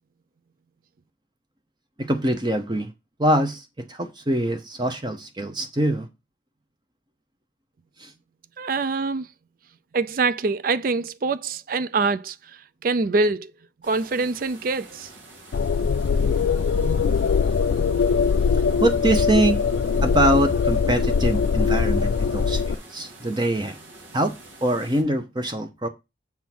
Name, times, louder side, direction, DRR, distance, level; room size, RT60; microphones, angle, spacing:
voice 1, 2.0-2.9 3.2-6.1 8.0-8.1 18.8-19.6 20.0-23.8 24.1-24.4 24.6-25.9, right 1 dB, 25° right, 0.8 m, -24 dB
voice 2, 8.6-9.3 9.9-12.3 12.8-13.5 13.8-15.1, right 3 dB, 45° right, 0.4 m, -24 dB
sound 1, 13.8-25.0, right 2 dB, 85° right, 2.3 m, -46 dB
sound 2, 15.5-22.7, left 5 dB, 70° left, 0.3 m, -21 dB
7.2 x 3.7 x 6.0 m
head